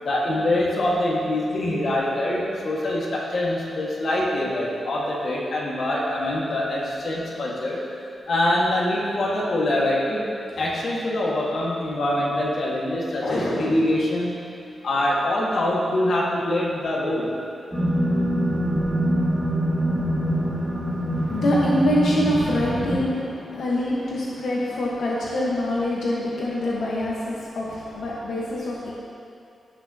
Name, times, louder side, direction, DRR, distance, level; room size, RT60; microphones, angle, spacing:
voice 1, 0.0-7.8 8.3-10.2 10.5-14.3 14.8-17.3, left 1 dB, 50° left, -5 dB, 1.7 m, -24 dB
sound 1, 17.7-23.0, equal, 20° right, 2.4 m, -24 dB
voice 2, 21.1-28.9, left 1 dB, 80° left, -5 dB, 1.2 m, -25 dB
16.5 x 6.2 x 2.9 m, 2.5 s
wide cardioid pair, 175°, 0 cm